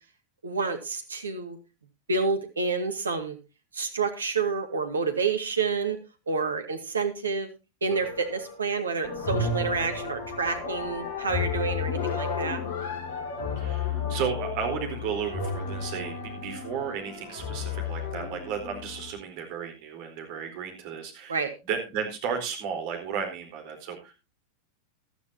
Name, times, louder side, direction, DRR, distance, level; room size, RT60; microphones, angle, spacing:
voice 1, 0.4-1.6 2.1-3.4 3.7-6.0 6.3-7.5 7.8-12.6 21.3-21.5, right 4 dB, 75° right, 7 dB, 1.9 m, -29 dB
sound 1, 7.9-8.7 9.0-19.1, left 5 dB, 55° left, 2.5 m, -32 dB
voice 2, 13.6-21.4 21.7-24.1, right 7 dB, 45° right, 4 dB, 4.1 m, -33 dB
15.0 x 12.5 x 2.8 m, 0.28 s
figure-of-eight pair, 90°, 0 cm